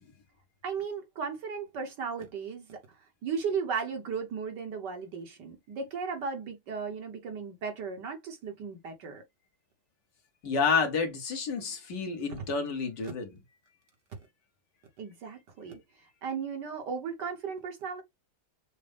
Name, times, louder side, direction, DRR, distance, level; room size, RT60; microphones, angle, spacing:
voice 1, 0.6-2.8 3.2-9.2 15.0-15.8 16.2-18.0, right 6 dB, 60° right, 1.7 m, -35 dB
voice 2, 10.4-13.4, left 5 dB, 60° left, 1.7 m, -29 dB
6.5 x 2.2 x 3.4 m
omnidirectional pair, 2.2 m